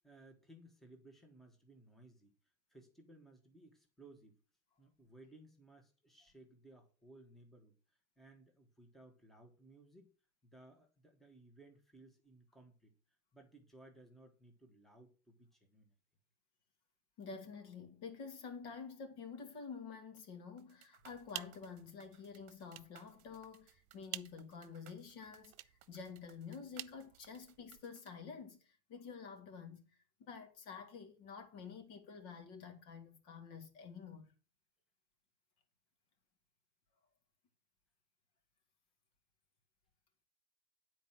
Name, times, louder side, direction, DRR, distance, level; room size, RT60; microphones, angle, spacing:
voice 1, 0.0-2.3 2.7-4.4 4.8-10.1 10.4-15.9, right 2 dB, ahead, 1.4 m, -61 dB
voice 2, 17.2-29.9 30.2-34.3, left 5 dB, 50° left, 2.4 m, -49 dB
sound 1, 20.6-28.1, right 12 dB, 35° right, 1.4 m, -65 dB
sound 2, 21.0-27.9, right 17 dB, 70° right, 0.7 m, -52 dB
9.3 x 4.6 x 7.3 m
supercardioid pair, 140°, 43 cm